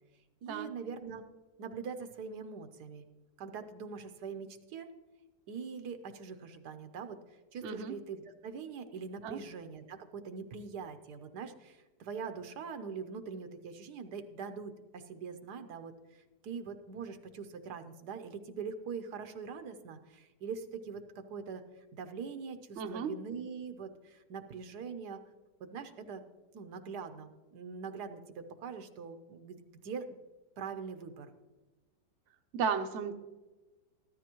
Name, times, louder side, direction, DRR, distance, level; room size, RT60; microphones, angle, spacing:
voice 1, 0.4-1.2 1.6-3.0 3.4-4.9 5.5-7.2 7.5-21.6 21.9-25.2 25.6-26.2 26.5-30.2 30.6-31.3, right 5 dB, 75° right, 8 dB, 1.4 m, -43 dB
voice 2, 7.6-7.9 9.2-9.4 22.8-23.1 32.5-33.1, right 6 dB, 55° right, 6 dB, 0.9 m, -34 dB
14.0 x 13.0 x 3.0 m, 1.2 s
omnidirectional pair, 1.8 m